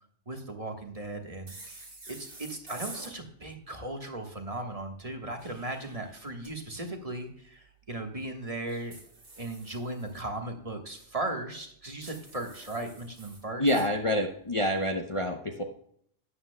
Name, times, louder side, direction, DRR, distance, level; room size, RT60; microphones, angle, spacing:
voice 1, 0.3-1.5 2.1-9.0 9.4-13.7, right 2 dB, 30° right, 3 dB, 1.4 m, -37 dB
sound 1, 1.5-3.1 5.2-6.5 8.7-10.2 12.0-13.9, right 2 dB, 50° right, 3.3 m, -48 dB
voice 2, 13.6-15.6, left 1 dB, 30° left, 2 dB, 0.8 m, -27 dB
13.0 x 9.8 x 2.2 m, 0.65 s
omnidirectional pair, 1.3 m